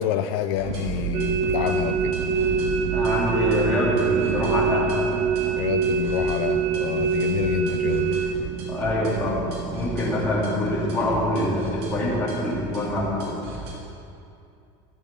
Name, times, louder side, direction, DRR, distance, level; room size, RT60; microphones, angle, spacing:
voice 1, 0.0-2.2 5.6-8.2, left 10 dB, 65° left, 8 dB, 0.5 m, -28 dB
sound 1, 0.6-13.2, right 9 dB, 70° right, 0.7 m, -33 dB
sound 2, 0.6-13.7, right 2 dB, 85° right, 3.2 m, -38 dB
sound 3, 1.1-8.4, right 4 dB, 40° right, 0.7 m, -25 dB
voice 2, 2.9-4.9 8.7-13.3, left 1 dB, 10° left, -8 dB, 3.0 m, -25 dB
16.0 x 7.3 x 6.9 m, 2.5 s
cardioid pair, 180°, 14 cm